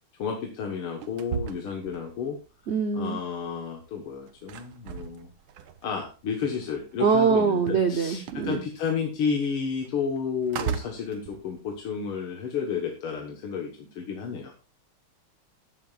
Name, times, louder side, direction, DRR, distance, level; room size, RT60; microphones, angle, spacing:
voice 1, 0.2-2.4 2.9-5.3 5.8-14.5, left 6 dB, 85° left, 2 dB, 2.4 m, -31 dB
sound 1, 0.7-2.8 3.1-7.0 7.3-12.0, right 8 dB, 80° right, 1.8 m, -38 dB
voice 2, 2.7-3.2 7.0-8.6, right 6 dB, 55° right, 6 dB, 0.7 m, -23 dB
14.0 x 10.0 x 2.5 m, 0.33 s
omnidirectional pair, 2.3 m